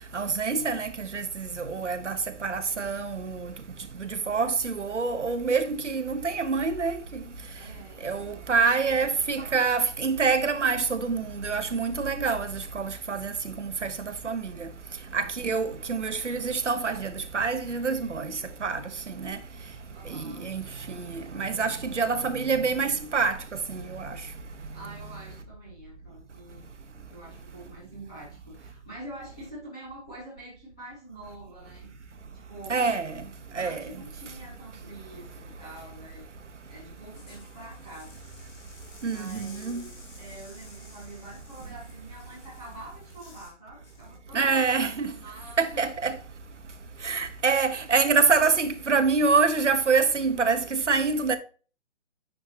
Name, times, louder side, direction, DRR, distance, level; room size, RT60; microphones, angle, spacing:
voice 1, 0.1-3.5 4.0-7.0 8.0-13.9 14.2-14.7 15.1-19.4 20.1-20.6 20.9-23.4 23.7-24.2 32.7-33.2 33.5-33.9 39.0-39.8 44.3-45.1 45.6-46.2 47.0-51.4, right 4 dB, 80° right, 1.1 m, -26 dB
voice 2, 7.5-9.1 15.7-15.9 19.9-20.5 24.7-26.7 27.1-31.9 32.3-32.9 33.5-36.3 36.7-38.1 39.0-45.9, right 1 dB, 5° left, 0.4 m, -46 dB
sound 1, 36.9-43.6 43.8-44.2, left 3 dB, 20° left, 2.5 m, -53 dB
9.9 x 4.5 x 2.8 m
figure-of-eight pair, 140°, 35 cm